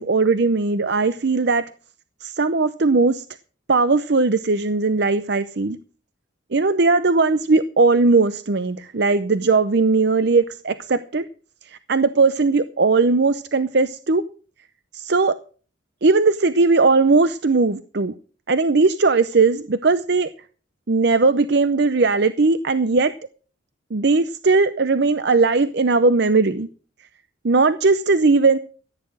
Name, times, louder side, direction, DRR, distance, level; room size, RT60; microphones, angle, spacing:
voice 1, 0.0-1.6 2.2-3.2 3.7-5.8 6.5-11.2 11.6-14.2 14.9-15.3 16.0-18.1 18.5-20.3 20.9-23.1 23.9-26.7 27.4-28.6, right 3 dB, 55° right, 12 dB, 0.6 m, -18 dB
15.0 x 9.5 x 6.3 m, 0.39 s
head